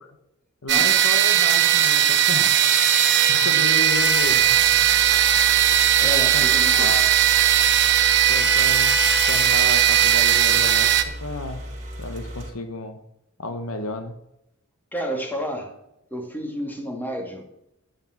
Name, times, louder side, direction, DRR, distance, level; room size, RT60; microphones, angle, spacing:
voice 1, 0.6-2.6 3.3-4.9 6.0-6.5 6.7-7.1 8.3-9.0 9.3-10.9 11.2-11.6 12.0-13.0 13.4-14.1, left 2 dB, 75° left, 8 dB, 1.2 m, -32 dB
sound 1, 0.7-11.0, right 10 dB, 55° right, 1.0 m, -18 dB
sound 2, 3.9-12.5, equal, 35° right, 3.5 m, -36 dB
voice 2, 6.0-7.0 14.9-15.7 16.1-17.4, equal, 10° left, 2 dB, 2.4 m, -30 dB
11.0 x 8.8 x 5.9 m, 0.83 s
head